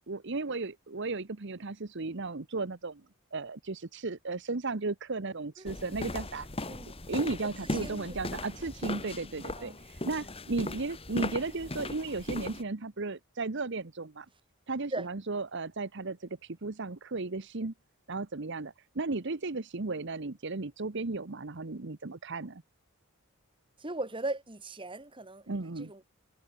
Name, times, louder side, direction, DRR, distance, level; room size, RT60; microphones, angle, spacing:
voice 1, 0.1-3.0 3.3-6.5 7.1-14.3 14.7-17.7 18.1-22.6 25.5-25.9, right 3 dB, 55° right, 1.0 m, -35 dB
sound 1, 5.7-12.6, left 2 dB, 25° left, 2.4 m, -38 dB
voice 2, 7.4-8.5 9.6-9.8 14.9-15.1 23.8-26.0, right 2 dB, 25° right, 2.8 m, -39 dB
head